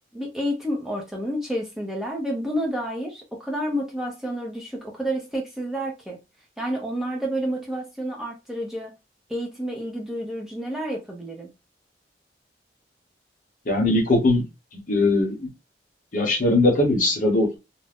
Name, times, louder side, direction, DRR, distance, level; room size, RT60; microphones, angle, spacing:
voice 1, 0.1-6.2 6.6-8.9 9.3-11.5, equal, ahead, 0.5 m, -29 dB
voice 2, 13.7-14.4 14.9-15.5 16.1-17.6, left 2 dB, 45° left, 0.8 m, -20 dB
2.4 x 2.0 x 3.4 m
head